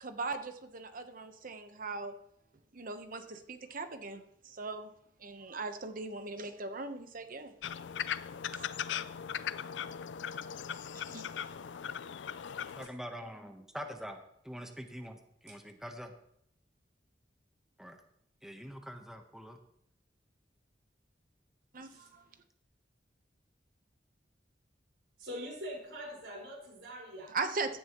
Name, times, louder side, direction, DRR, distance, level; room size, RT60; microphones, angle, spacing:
voice 1, 0.0-2.2 2.7-4.9 5.2-7.5 8.5-8.7 10.9-11.2 21.7-22.2 27.3-27.8, right 3 dB, 50° right, 8 dB, 1.0 m, -39 dB
sound 1, 7.6-12.9, left 8 dB, 85° left, 0.4 m, -39 dB
voice 2, 12.8-16.1 17.8-18.0 18.4-19.6, equal, 5° right, 4 dB, 1.1 m, -45 dB
voice 3, 25.2-27.3, equal, 85° right, -3 dB, 5.0 m, -43 dB
16.0 x 10.0 x 3.1 m, 0.73 s
head